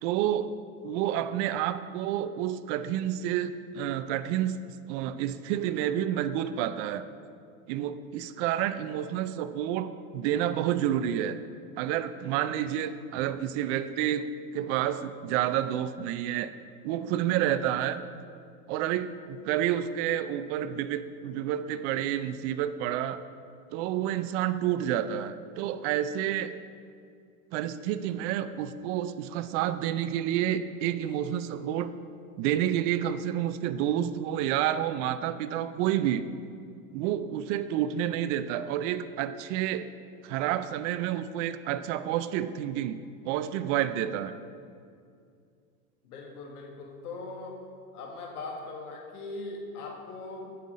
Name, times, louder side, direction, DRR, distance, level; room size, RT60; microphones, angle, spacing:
voice 1, 0.0-0.5 0.8-4.6 4.9-7.0 7.7-11.4 11.8-16.5 16.8-18.0 18.7-23.2 23.7-26.6 27.5-31.9 32.4-36.3 36.9-39.9 40.2-43.0 43.2-44.3, right 11 dB, 55° right, 13 dB, 0.6 m, -29 dB
voice 2, 46.0-47.6 47.9-50.6, left 3 dB, 80° left, 1 dB, 1.8 m, -40 dB
8.4 x 5.7 x 6.3 m, 2.3 s
hypercardioid pair, 100°, 44 cm